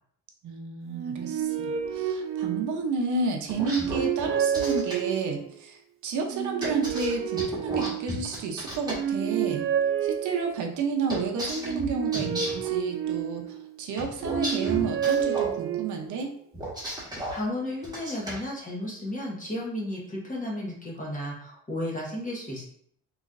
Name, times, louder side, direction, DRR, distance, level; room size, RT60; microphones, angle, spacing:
voice 1, 0.4-9.6 10.0-16.3, right 4 dB, 75° right, 2 dB, 0.8 m, -31 dB
sound 1, 0.9-3.0 3.5-5.5 6.2-8.4 8.8-10.9 11.6-13.7 14.2-16.2, right 9 dB, 45° right, 0.5 m, -29 dB
sound 2, 3.5-5.0 6.6-9.0 11.1-12.7 14.0-15.5 16.5-17.4 17.8-18.4, right 1 dB, 15° right, 1.4 m, -34 dB
voice 2, 17.0-22.6, left 1 dB, 25° left, -3 dB, 1.4 m, -33 dB
3.9 x 3.1 x 2.5 m, 0.65 s
cardioid pair, 90°, 30 cm